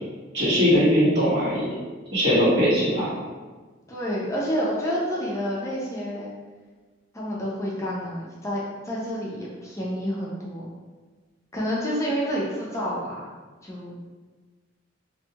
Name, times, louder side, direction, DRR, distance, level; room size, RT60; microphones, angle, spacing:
voice 1, 0.3-1.6 2.1-3.1, equal, 65° right, -10 dB, 1.3 m, -20 dB
voice 2, 2.4-2.7 3.9-6.3 7.1-10.7 11.5-13.3 13.6-14.1, equal, 15° left, -5 dB, 0.4 m, -29 dB
2.6 x 2.3 x 2.8 m, 1.3 s
head